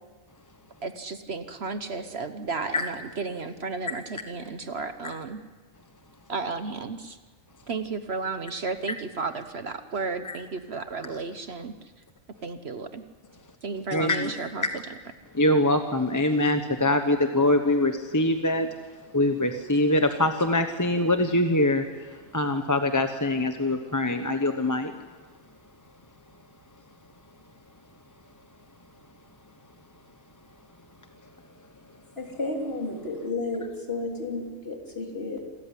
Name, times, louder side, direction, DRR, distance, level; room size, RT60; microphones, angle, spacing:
voice 1, 0.8-5.4 6.3-7.2 7.7-11.7 12.4-13.0 13.6-14.8, right 4 dB, 50° right, 9 dB, 1.2 m, -33 dB
voice 2, 13.9-14.3 15.3-18.7 19.1-24.9, left 1 dB, 15° left, 6 dB, 1.0 m, -24 dB
voice 3, 32.2-35.4, left 2 dB, 45° left, 0 dB, 3.8 m, -32 dB
27.5 x 14.0 x 9.9 m, 1.4 s
omnidirectional pair, 1.4 m